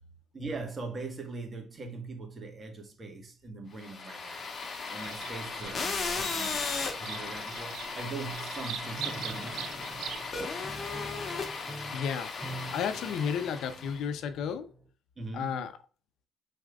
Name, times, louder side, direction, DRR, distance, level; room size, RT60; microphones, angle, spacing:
voice 1, 0.3-4.5 4.9-9.8 15.2-15.7, right 3 dB, 35° right, 1.4 m, -41 dB
sound 1, 3.8-14.0, left 4 dB, 45° left, 1.3 m, -36 dB
Bird vocalization bird call bird song, 5.0-10.2, right 9 dB, 80° right, 0.4 m, -42 dB
Piano, 9.0-14.9, right 1 dB, 10° right, 0.8 m, -46 dB
voice 2, 11.9-12.3 12.7-14.7 15.3-15.7, left 7 dB, 80° left, 0.6 m, -32 dB
5.0 x 4.2 x 2.3 m
cardioid pair, 90°, 0 cm